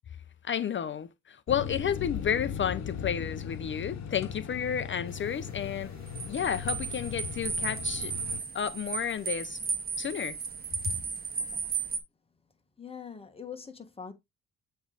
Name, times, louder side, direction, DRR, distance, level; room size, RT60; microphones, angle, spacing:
voice 1, 0.4-5.9 6.3-8.1 8.5-9.6 10.0-10.4, left 8 dB, 40° left, 0.5 m, -31 dB
sound 1, 1.5-8.4, left 7 dB, 65° left, 1.0 m, -38 dB
sound 2, 5.1-12.0, right 5 dB, 30° right, 1.4 m, -35 dB
voice 2, 12.8-14.1, left 7 dB, 20° left, 1.4 m, -42 dB
7.7 x 3.2 x 3.9 m
cardioid pair, 90°, 30 cm